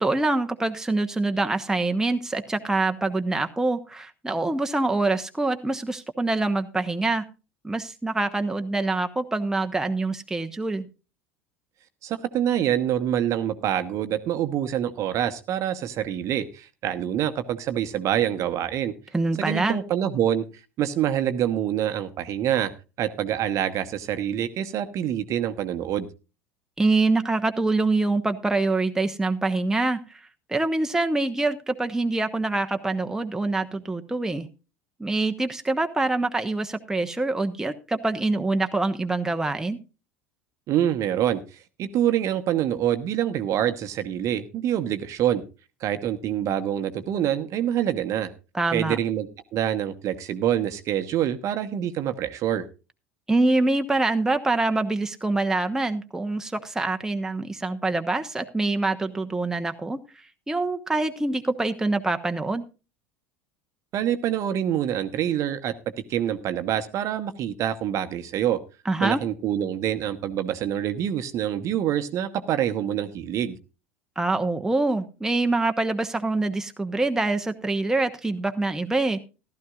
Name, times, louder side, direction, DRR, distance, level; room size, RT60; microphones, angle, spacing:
voice 1, 0.0-7.2 7.6-10.9 19.1-19.8 26.8-30.2 30.5-34.5 35.0-39.8 48.5-49.0 53.3-60.0 60.5-62.6 68.8-69.2 74.2-79.2, right 2 dB, 5° right, 6 dB, 1.0 m, -25 dB
voice 2, 12.0-18.9 19.4-20.4 20.8-22.7 23.0-26.1 40.7-41.4 41.8-45.4 45.8-48.3 48.7-52.6 63.9-65.7 66.1-68.6 69.0-73.6, right 10 dB, 45° right, 9 dB, 1.0 m, -26 dB
15.0 x 12.5 x 2.4 m, 0.31 s
figure-of-eight pair, 70°, 7 cm